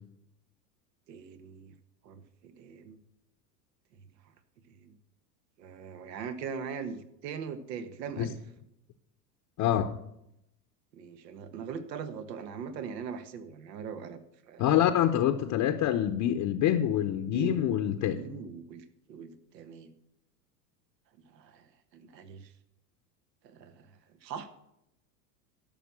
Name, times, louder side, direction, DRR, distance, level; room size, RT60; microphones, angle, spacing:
voice 1, 1.1-1.7 2.0-3.0 4.7-5.0 5.6-8.4 10.9-14.6 17.3-19.9 21.2-22.5 23.4-24.5, right 6 dB, 75° right, 10 dB, 1.4 m, -41 dB
voice 2, 9.6-9.9 14.6-18.2, left 11 dB, 40° left, 7 dB, 0.8 m, -26 dB
12.5 x 5.8 x 7.4 m, 0.81 s
hypercardioid pair, 95°, 49 cm